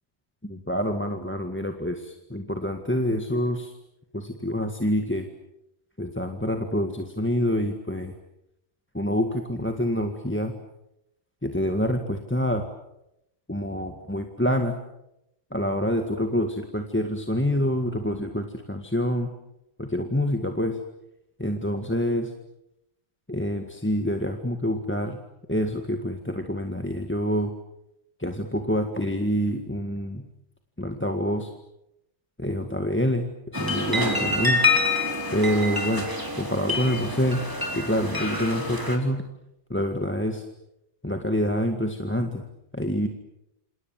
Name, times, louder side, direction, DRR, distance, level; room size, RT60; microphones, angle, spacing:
voice 1, 0.4-3.7 4.1-5.3 6.0-8.1 8.9-10.5 11.4-12.6 13.5-14.7 15.5-19.3 19.8-20.8 21.4-22.3 23.3-25.2 25.5-27.5 28.2-30.2 30.8-31.5 32.4-34.6 35.3-36.1 36.4-37.4 37.8-39.2 39.7-40.5 41.0-42.4 42.7-43.1, equal, 10° left, 5 dB, 1.8 m, -26 dB
sound 1, 33.5-39.0, left 2 dB, 15° right, 4.4 m, -26 dB
28.0 x 27.5 x 7.7 m, 0.85 s
omnidirectional pair, 1.2 m